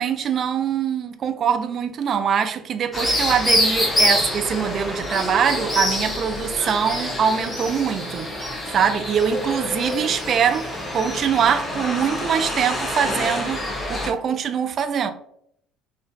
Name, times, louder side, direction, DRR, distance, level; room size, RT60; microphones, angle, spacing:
voice 1, 0.0-8.3 8.7-13.6 13.9-15.1, right 7 dB, 45° right, 0.4 m, -23 dB
sound 1, 2.9-14.1, left 1 dB, 15° left, 1.0 m, -26 dB
3.6 x 2.6 x 2.4 m
hypercardioid pair, 60°, 0 cm